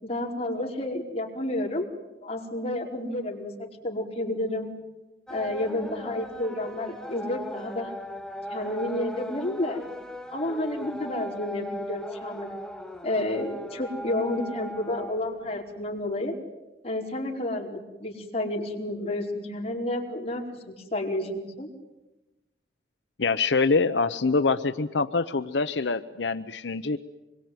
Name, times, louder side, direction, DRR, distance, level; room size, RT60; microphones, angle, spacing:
voice 1, 0.0-1.9 2.2-4.7 5.3-7.9 8.5-9.8 10.3-12.5 13.0-16.3 16.8-21.7, left 1 dB, 35° left, -1 dB, 4.9 m, -30 dB
sound 1, 5.3-15.6, equal, 5° left, 1.3 m, -38 dB
voice 2, 23.2-27.0, left 4 dB, 85° left, 10 dB, 0.8 m, -25 dB
26.0 x 22.5 x 9.4 m, 1.1 s
head